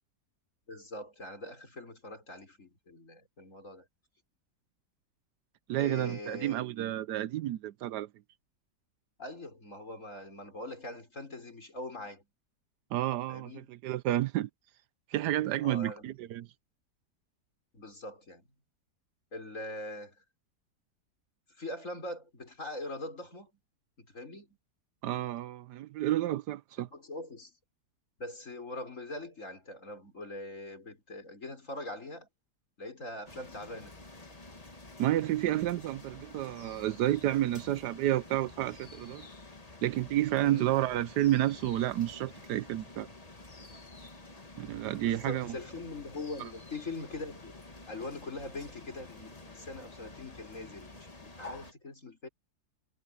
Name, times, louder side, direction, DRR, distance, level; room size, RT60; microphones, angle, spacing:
voice 1, 0.7-3.9 5.8-6.6 9.2-12.3 13.3-13.7 15.6-16.1 17.7-18.5 19.3-20.2 21.6-23.5 24.0-24.6 26.8-27.5 28.2-32.3 32.8-34.0 40.4-40.7 45.0-47.5 47.9-52.3, left 2 dB, 45° left, 5.4 m, -42 dB
voice 2, 5.7-8.1 12.9-14.5 15.1-16.5 25.0-26.9 35.0-39.3 39.8-43.1 44.6-45.6 46.4-46.5, right 14 dB, 75° right, 1.2 m, -30 dB
sound 1, 33.3-51.7, left 2 dB, 20° left, 1.8 m, -50 dB
omnidirectional pair, 1.8 m